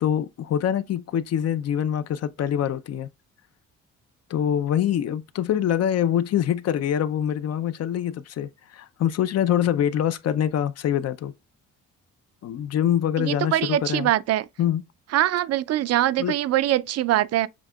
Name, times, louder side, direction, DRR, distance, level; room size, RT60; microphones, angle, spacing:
voice 1, 0.0-3.1 4.3-11.3 12.4-14.1 14.6-14.8 16.2-16.4, left 10 dB, 55° left, 0.6 m, -24 dB
voice 2, 13.2-14.5 15.1-17.5, right 13 dB, 55° right, 0.4 m, -23 dB
7.3 x 2.8 x 2.3 m
cardioid pair, 90°, 30 cm